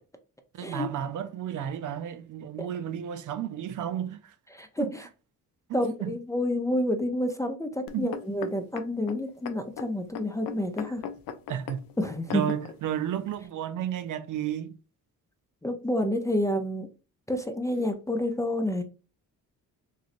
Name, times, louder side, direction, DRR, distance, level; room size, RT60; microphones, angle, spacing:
voice 1, 0.5-4.3 4.8-4.9 5.7-6.1 7.9-8.1 11.5-11.8 12.3-14.8, right 10 dB, 60° right, 0.5 m, -32 dB
voice 2, 4.5-5.1 5.7-11.0 12.0-12.4 15.6-16.9 17.3-18.8, left 1 dB, 10° left, 0.4 m, -29 dB
sound 1, 7.9-12.8 13.4-13.5, left 7 dB, 75° left, 0.5 m, -39 dB
3.0 x 2.7 x 2.5 m
cardioid pair, 85°, 35 cm